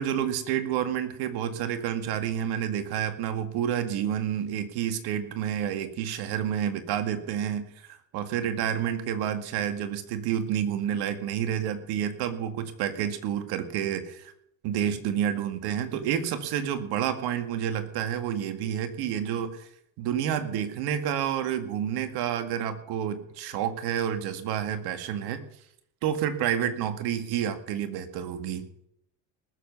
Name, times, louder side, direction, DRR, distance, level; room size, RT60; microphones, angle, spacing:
voice 1, 0.0-14.3 14.6-19.7 20.0-25.4 26.0-28.6, right 9 dB, 75° right, 9 dB, 2.0 m, -29 dB
19.5 x 7.3 x 6.8 m, 0.72 s
supercardioid pair, 75°, 39 cm